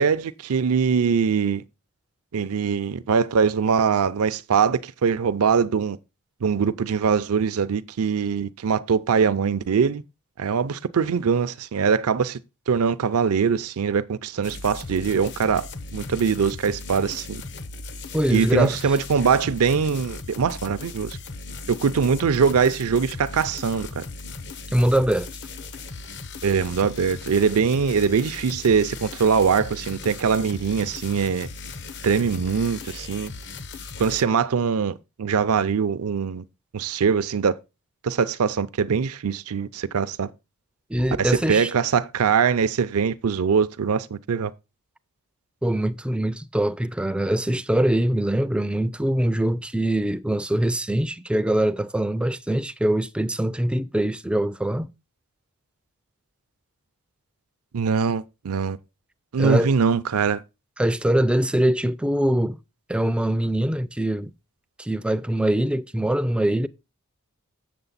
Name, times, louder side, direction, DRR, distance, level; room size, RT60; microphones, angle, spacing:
voice 1, 0.0-1.6 2.3-6.0 6.4-10.0 10.4-12.4 12.7-17.4 18.3-21.2 21.7-24.0 26.4-31.5 32.0-33.3 34.0-36.4 36.7-37.5 38.0-40.3 41.2-44.5 57.7-58.8 59.3-60.4, right 6 dB, 70° right, 0.5 m, -22 dB
sound 1, 14.4-34.3, left 3 dB, 55° left, 0.8 m, -37 dB
voice 2, 18.1-19.0 24.7-25.3 40.9-41.7 45.6-54.9 59.4-59.7 60.8-62.6 62.9-64.3 64.8-66.7, right 1 dB, 5° right, 0.4 m, -23 dB
7.6 x 6.8 x 4.0 m
head